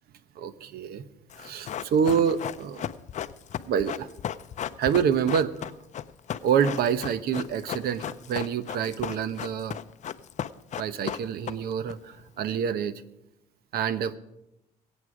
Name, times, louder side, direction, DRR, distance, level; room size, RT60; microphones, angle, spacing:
voice 1, 0.4-1.0 1.4-2.8 3.7-4.1 4.8-5.5 6.4-9.8 10.8-12.9 13.7-14.2, right 7 dB, 65° right, 14 dB, 0.9 m, -27 dB
Run, 1.3-11.9 12.2-12.3, left 10 dB, 45° left, 0.5 m, -35 dB
22.0 x 8.2 x 4.9 m, 0.86 s
cardioid pair, 110°, 17 cm